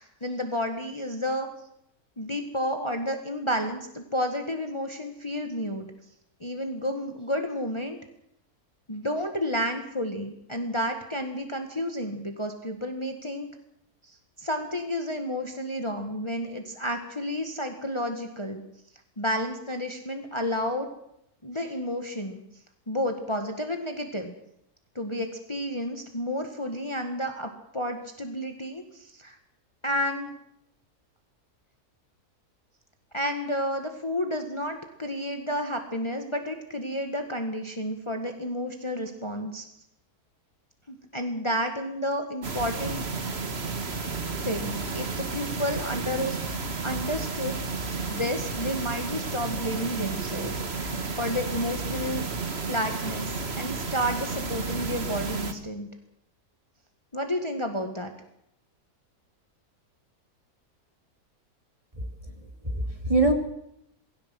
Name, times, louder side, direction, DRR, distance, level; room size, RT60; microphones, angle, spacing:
voice 1, 0.0-1.5 2.2-5.9 6.4-8.0 8.9-13.5 14.1-18.6 19.2-20.9 21.4-22.4 22.9-24.3 25.0-29.4 29.8-30.3 33.1-39.7 40.9-43.1 44.1-46.4 46.8-52.2 52.7-55.9 57.1-58.1, equal, 20° left, 5 dB, 1.9 m, -31 dB
sound 1, 42.4-55.5, right 4 dB, 40° right, 2.0 m, -32 dB
voice 2, 61.9-63.3, right 2 dB, 20° right, 4 dB, 2.9 m, -26 dB
20.5 x 17.0 x 7.8 m, 0.77 s
omnidirectional pair, 1.6 m